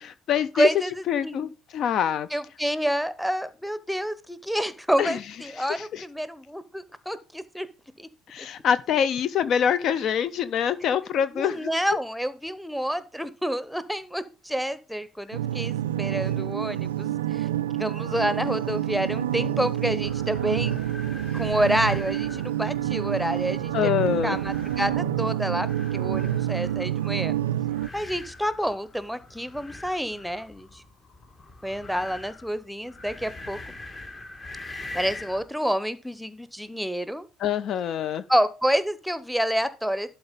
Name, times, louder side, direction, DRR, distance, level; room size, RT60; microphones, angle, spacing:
voice 1, 0.0-0.7 1.1-2.3 5.0-5.1 5.8-6.0 8.3-11.7 23.7-24.4 37.4-38.2, left 8 dB, 55° left, 0.5 m, -25 dB
voice 2, 0.5-1.5 2.3-7.7 8.0-8.1 8.4-8.5 10.8-10.9 11.3-17.5 17.8-20.8 21.3-23.9 24.2-27.3 27.9-30.8 31.6-33.6 34.7-37.3 38.3-40.1, equal, ahead, 1.0 m, -28 dB
sound 1, 15.3-27.9, right 12 dB, 80° right, 0.4 m, -28 dB
sound 2, 20.0-35.5, left 2 dB, 30° left, 1.5 m, -43 dB
11.5 x 4.1 x 5.3 m
figure-of-eight pair, 55°, 0 cm